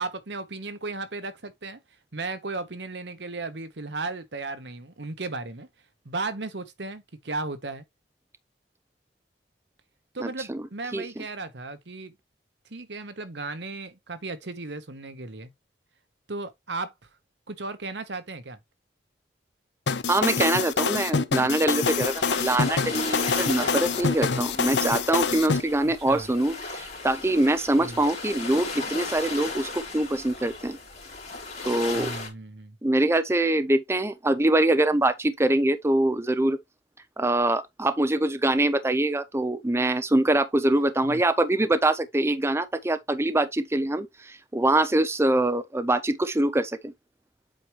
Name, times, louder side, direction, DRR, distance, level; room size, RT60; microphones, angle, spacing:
voice 1, 0.0-1.8 2.1-5.7 6.0-7.8 10.1-12.2 12.7-15.5 16.3-16.9 17.5-18.6 25.8-26.3 27.8-28.0 31.9-32.8 41.0-41.2, right 3 dB, 70° right, 1.2 m, -35 dB
voice 2, 10.2-10.6 10.9-11.0 20.1-30.8 31.6-32.2 32.8-36.6 37.2-46.9, right 1 dB, 15° right, 0.5 m, -24 dB
sound 1, 19.9-25.6, left 5 dB, 70° left, 0.7 m, -26 dB
sound 2, 21.8-32.3, left 3 dB, 40° left, 3.3 m, -36 dB
7.9 x 4.7 x 3.1 m
head